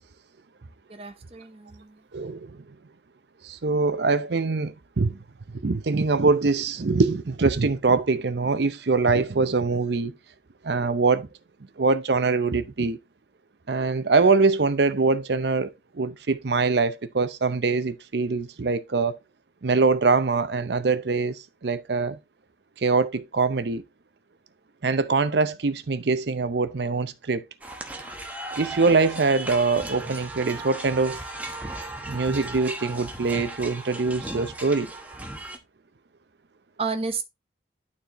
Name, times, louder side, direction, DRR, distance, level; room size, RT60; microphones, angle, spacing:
voice 1, 0.9-2.0 36.8-37.2, right 4 dB, 30° right, 1.0 m, -31 dB
voice 2, 2.1-2.5 3.4-5.2 5.5-10.1 10.6-11.3 11.8-13.0 13.7-19.2 19.6-22.2 22.8-23.8 24.8-27.4 28.6-31.2 32.1-34.9, right 4 dB, 65° right, 0.6 m, -23 dB
sound 1, 27.6-35.6, right 2 dB, 10° right, 1.0 m, -36 dB
11.5 x 4.3 x 3.0 m
head